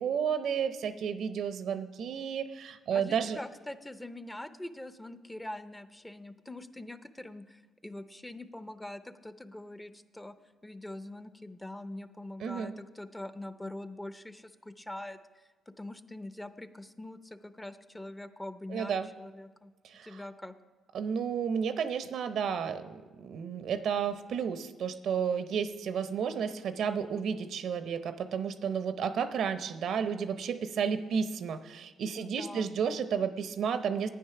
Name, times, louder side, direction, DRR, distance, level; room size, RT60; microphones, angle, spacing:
voice 1, 0.0-3.4 12.4-12.7 18.7-19.1 19.8-20.2 20.9-34.1, right 7 dB, 70° right, 11 dB, 0.6 m, -32 dB
voice 2, 2.9-10.3 10.6-19.7 20.0-20.5 32.2-32.7, left 1 dB, 10° left, 11 dB, 0.6 m, -43 dB
10.0 x 9.2 x 5.8 m, 1.3 s
cardioid pair, 90°, 0 cm